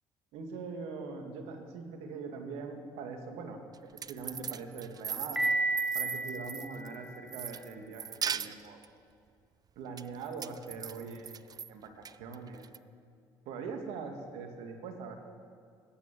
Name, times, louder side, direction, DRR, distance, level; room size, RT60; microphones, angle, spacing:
voice 1, 0.3-3.6 4.1-5.4 5.9-8.8 9.8-11.4 11.7-12.6 13.5-15.2, right 4 dB, 80° right, 4 dB, 2.1 m, -42 dB
sound 1, 3.7-7.0 7.3-8.9 10.0-11.7 12.1-12.8, right 7 dB, 40° right, 0.5 m, -38 dB
Piano, 5.4-7.3, right 2 dB, 5° right, 1.8 m, -32 dB
19.0 x 9.1 x 7.5 m, 2.1 s
supercardioid pair, 70°, 10 cm